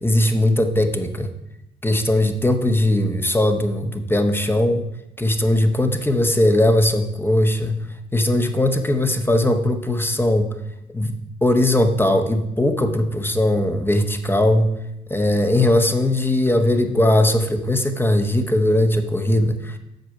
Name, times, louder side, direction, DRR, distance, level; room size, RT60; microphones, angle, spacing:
voice 1, 0.0-1.3 1.8-4.9 5.2-7.8 8.1-10.5 10.9-11.1 11.4-14.7 15.1-19.8, left 1 dB, 10° left, 6 dB, 1.0 m, -19 dB
8.1 x 6.0 x 6.4 m, 0.87 s
cardioid pair, 90°, 20 cm